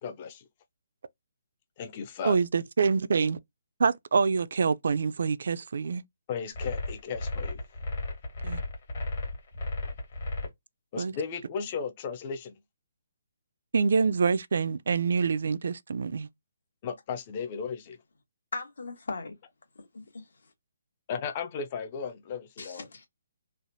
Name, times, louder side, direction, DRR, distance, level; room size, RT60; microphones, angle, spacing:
voice 1, 0.0-0.4 1.8-2.4 6.3-7.6 10.9-12.5 16.8-18.0 21.1-22.9, left 6 dB, 30° left, 0.4 m, -35 dB
voice 2, 2.2-3.4 3.8-6.0 8.4-8.6 11.0-11.1 13.7-16.3, right 5 dB, 65° right, 0.3 m, -26 dB
sound 1, 6.5-10.5, left 2 dB, 50° left, 1.1 m, -34 dB
voice 3, 18.5-19.3 19.9-20.3 22.6-23.1, left 3 dB, 80° left, 1.1 m, -38 dB
3.2 x 2.1 x 2.5 m
hypercardioid pair, 160°, 0 cm